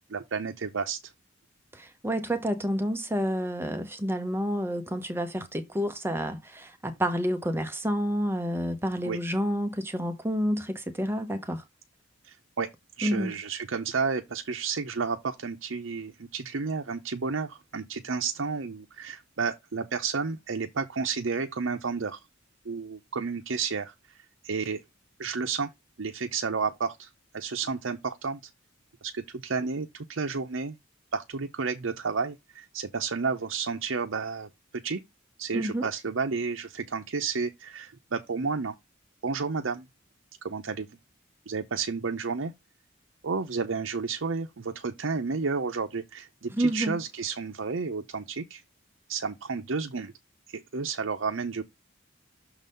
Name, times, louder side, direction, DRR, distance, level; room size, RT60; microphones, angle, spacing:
voice 1, 0.1-1.0 9.0-9.2 12.2-12.7 13.0-22.2 22.6-23.9 24.4-24.8 25.2-25.7 26.0-28.4 29.0-30.8 31.1-34.5 34.8-35.0 35.4-38.7 39.2-39.9 40.4-41.0 41.5-42.5 43.2-48.6 49.1-50.1 50.5-51.6, right 5 dB, 65° right, 0.7 m, -31 dB
voice 2, 1.7-11.6 13.0-13.3 35.5-35.9 46.5-47.0, equal, 10° right, 0.8 m, -29 dB
6.4 x 4.0 x 5.4 m
head